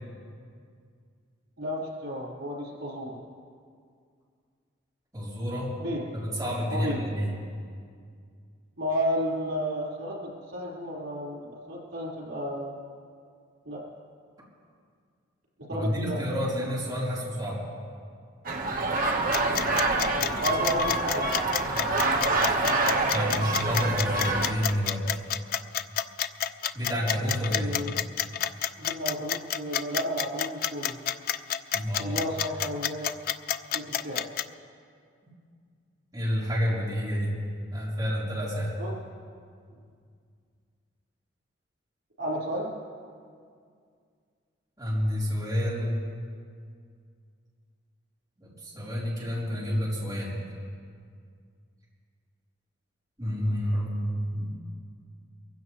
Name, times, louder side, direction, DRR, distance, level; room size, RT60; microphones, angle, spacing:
voice 1, 1.6-3.2 5.8-6.0 6.7-7.0 8.8-12.7 13.6-13.8 15.7-16.2 20.3-21.2 27.5-28.0 28.8-31.0 32.0-33.1 33.7-34.3 38.8-38.9 42.2-42.7, equal, 90° right, -5 dB, 4.5 m, -32 dB
voice 2, 5.1-5.7 6.1-7.3 15.7-17.6 23.1-25.1 26.7-27.7 31.7-32.2 36.1-37.3 37.7-38.7 44.8-46.0 48.4-50.4 53.2-54.5, equal, 20° right, -8 dB, 3.8 m, -29 dB
sound 1, 18.4-24.5, right 2 dB, 45° right, 1.3 m, -26 dB
sound 2, 19.3-34.4, left 10 dB, 45° left, 0.4 m, -29 dB
23.5 x 15.5 x 3.2 m, 2.2 s
head